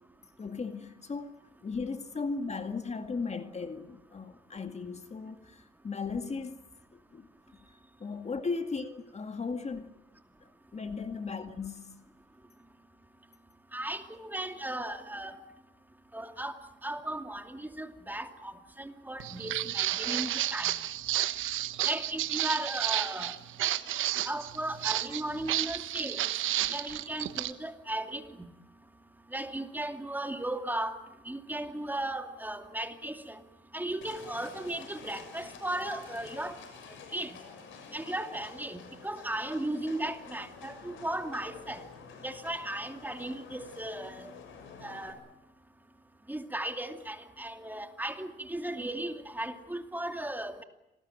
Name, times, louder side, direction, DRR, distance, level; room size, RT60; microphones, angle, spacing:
voice 1, 0.4-1.3 1.6-6.6 6.9-7.3 8.0-9.9 10.7-12.0, left 4 dB, 35° left, 2.1 m, -36 dB
voice 2, 13.7-15.4 16.1-20.7 21.8-23.4 24.3-26.2 26.7-28.2 29.3-31.0 31.2-33.4 33.7-36.6 37.1-37.4 37.9-41.9 42.2-44.3 44.8-45.2 46.3-50.6, right 1 dB, 10° right, 2.5 m, -36 dB
Walk footsteps, 19.2-27.5, right 13 dB, 80° right, 1.3 m, -31 dB
Livestock farm animals working animals, 34.0-45.1, left 5 dB, 80° left, 7.0 m, -49 dB
27.5 x 20.0 x 9.1 m
cardioid pair, 90°, 20 cm